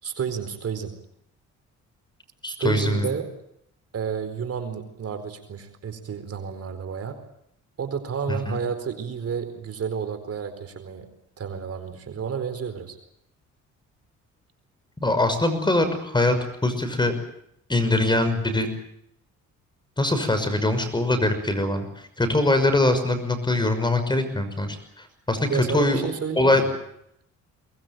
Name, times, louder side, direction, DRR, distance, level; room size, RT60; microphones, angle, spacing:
voice 1, 0.0-1.0 2.5-3.3 3.9-7.2 7.8-11.1 11.4-13.0 25.5-26.7, right 6 dB, 55° right, 8 dB, 4.4 m, -31 dB
voice 2, 2.4-3.1 8.3-8.6 15.0-16.4 16.6-17.1 17.7-18.7 20.0-26.0 26.4-26.6, left 2 dB, 15° left, 8 dB, 6.0 m, -22 dB
23.5 x 20.5 x 9.3 m, 0.74 s
cardioid pair, 90°, 30 cm